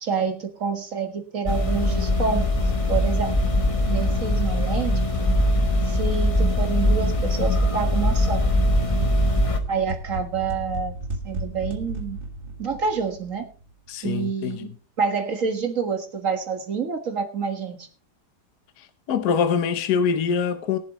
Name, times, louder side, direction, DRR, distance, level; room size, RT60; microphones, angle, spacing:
voice 1, 0.0-2.5 2.9-3.3 3.9-4.9 5.9-8.4 9.7-10.9 11.2-12.2 12.6-13.5 14.0-17.9, right 5 dB, 50° right, 1.9 m, -27 dB
sound 1, 1.5-9.6, left 1 dB, 25° left, 0.8 m, -21 dB
sound 2, 6.3-13.8, right 2 dB, 30° right, 1.7 m, -35 dB
voice 2, 13.9-14.7 18.8-20.8, left 6 dB, 65° left, 1.4 m, -24 dB
21.5 x 7.4 x 3.0 m
omnidirectional pair, 1.9 m